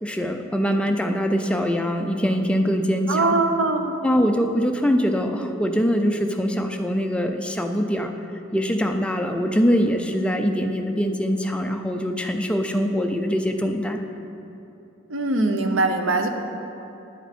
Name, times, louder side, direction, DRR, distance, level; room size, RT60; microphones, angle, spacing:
voice 1, 0.0-3.4 4.0-8.1 8.5-14.0, equal, 5° left, 4 dB, 0.4 m, -23 dB
voice 2, 3.1-3.9 15.1-16.3, right 2 dB, 85° right, 6 dB, 0.7 m, -21 dB
9.8 x 7.2 x 4.3 m, 2.8 s
head